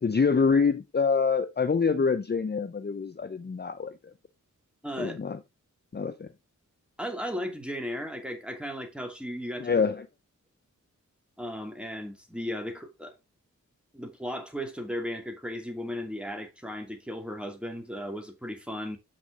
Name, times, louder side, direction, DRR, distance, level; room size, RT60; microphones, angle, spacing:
voice 1, 0.0-3.9 5.0-5.4 5.9-6.3 9.6-10.1, left 5 dB, 35° left, 0.6 m, -26 dB
voice 2, 4.8-5.2 7.0-9.8 11.4-13.1 13.9-19.0, equal, 5° right, 2.8 m, -36 dB
7.5 x 6.3 x 3.7 m
cardioid pair, 55°, 31 cm